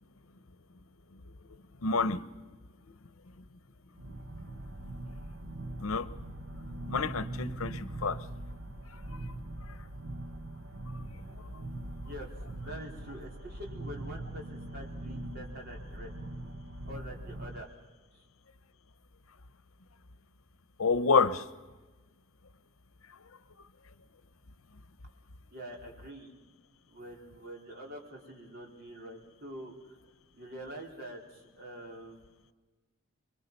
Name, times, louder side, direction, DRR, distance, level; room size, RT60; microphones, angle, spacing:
voice 1, 1.8-2.2 5.8-6.1 6.9-8.3 8.9-9.4 9.7-9.8 10.9-11.0 11.4-11.6 20.8-21.5, left 4 dB, 80° left, 14 dB, 0.8 m, -29 dB
sound 1, 3.9-17.6, right 1 dB, 65° right, 1.0 m, -42 dB
voice 2, 11.9-12.3 12.6-16.1 16.9-17.7 18.1-18.2 25.5-26.3 26.9-30.0 30.3-32.2, right 1 dB, 50° right, 0 dB, 4.1 m, -45 dB
26.5 x 23.0 x 5.4 m, 1.2 s
head